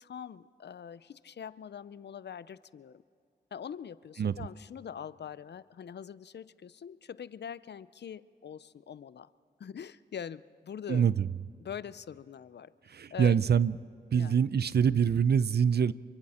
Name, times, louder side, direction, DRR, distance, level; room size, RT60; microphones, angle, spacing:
voice 1, 0.0-3.0 3.5-9.3 9.6-11.1 11.6-12.7 13.1-13.4 14.1-14.5, left 8 dB, 70° left, 17 dB, 0.5 m, -43 dB
voice 2, 10.9-11.3 12.9-13.8 14.1-15.9, right 7 dB, 65° right, 18 dB, 0.6 m, -25 dB
29.0 x 24.5 x 4.3 m, 2.4 s
cardioid pair, 50°, 18 cm